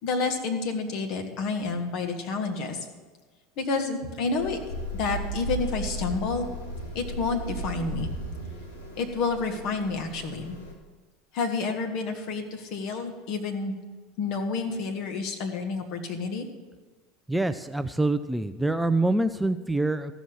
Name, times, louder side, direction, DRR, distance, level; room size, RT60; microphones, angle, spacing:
voice 1, 0.0-2.9 3.6-4.6 4.9-6.5 6.9-8.1 9.0-10.6 11.3-13.7 14.2-16.5, left 4 dB, 55° left, 4 dB, 1.7 m, -29 dB
sound 1, 4.3-10.7, right 1 dB, 85° left, 1.9 m, -36 dB
voice 2, 17.3-20.1, right 2 dB, 5° right, 10 dB, 0.4 m, -25 dB
14.5 x 6.2 x 7.1 m, 1.3 s
hypercardioid pair, 80°, 0 cm